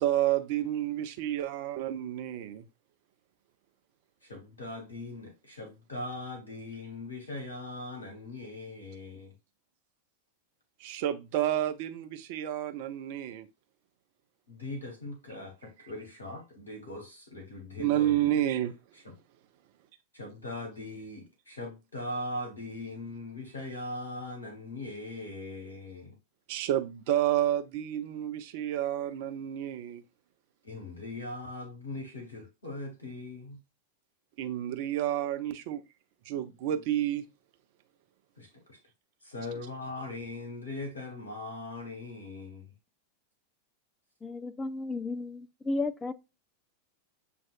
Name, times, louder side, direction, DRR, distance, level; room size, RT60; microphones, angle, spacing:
voice 1, 0.0-2.6 10.8-13.5 17.8-18.7 26.5-30.0 34.4-35.8 36.2-37.2, right 12 dB, 50° right, 0.6 m, -30 dB
voice 2, 4.2-9.3 14.5-18.4 20.1-26.1 30.6-33.6 36.8-36.9 38.4-38.8 39.2-42.7, left 2 dB, 70° left, 1.2 m, -40 dB
voice 3, 44.2-46.1, left 3 dB, 15° left, 0.5 m, -33 dB
7.4 x 2.5 x 2.4 m
figure-of-eight pair, 90°, 0 cm